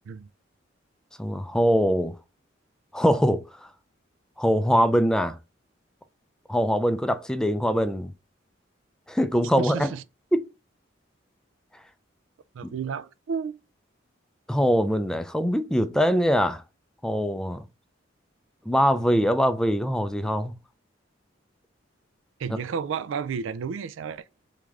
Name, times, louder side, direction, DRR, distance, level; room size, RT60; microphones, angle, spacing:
voice 1, 1.2-2.2 2.9-3.4 4.4-5.4 6.5-8.1 9.1-9.9 10.3-10.4 12.6-12.7 14.5-16.6 17.0-17.6 18.7-20.5 22.5-22.6, equal, 5° left, 0.3 m, -23 dB
voice 2, 9.6-10.0 12.5-13.5 22.4-24.2, right 6 dB, 80° right, 0.4 m, -32 dB
3.6 x 3.2 x 3.5 m
head